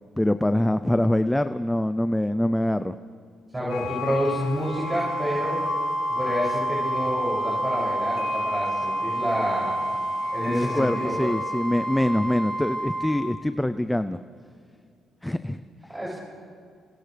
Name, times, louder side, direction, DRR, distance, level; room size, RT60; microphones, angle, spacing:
voice 1, 0.2-3.0 10.5-14.2 15.2-15.6, left 1 dB, 5° left, 11 dB, 0.5 m, -24 dB
voice 2, 3.5-5.6 6.1-9.7 10.3-11.3 15.9-16.1, equal, 15° right, -5 dB, 6.9 m, -28 dB
sound 1, 3.7-13.0, left 10 dB, 85° left, 2.7 m, -37 dB
Wind instrument woodwind instrument, 4.6-13.2, right 2 dB, 80° right, 2.9 m, -29 dB
30.0 x 27.5 x 3.4 m, 2.1 s
cardioid pair, 90°, 0 cm